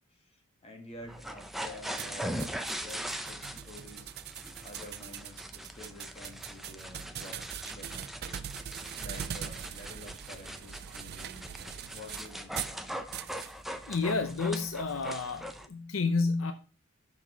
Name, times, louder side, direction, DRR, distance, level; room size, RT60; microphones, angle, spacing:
voice 1, 0.1-4.1 4.6-8.5 9.0-13.1, left 1 dB, 30° left, 1.9 m, -50 dB
sound 1, 1.0-15.7, equal, ahead, 0.6 m, -41 dB
sound 2, 2.0-12.8 13.1-13.5, right 9 dB, 50° right, 0.4 m, -42 dB
voice 2, 13.9-16.5, left 4 dB, 70° left, 0.7 m, -30 dB
7.3 x 5.9 x 4.5 m
head